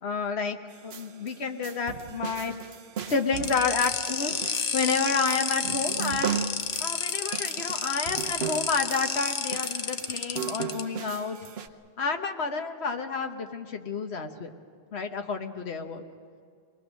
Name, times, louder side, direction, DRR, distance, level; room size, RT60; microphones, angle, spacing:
voice 1, 0.0-2.5 3.1-6.4 6.8-11.4 12.0-14.5 14.9-16.0, left 4 dB, 85° left, 6 dB, 1.4 m, -30 dB
sound 1, 0.7-11.7, right 8 dB, 75° right, 1.0 m, -37 dB
sound 2, 3.4-10.8, left 6 dB, 60° left, 0.9 m, -31 dB
24.5 x 20.0 x 6.3 m, 2.1 s
omnidirectional pair, 1.1 m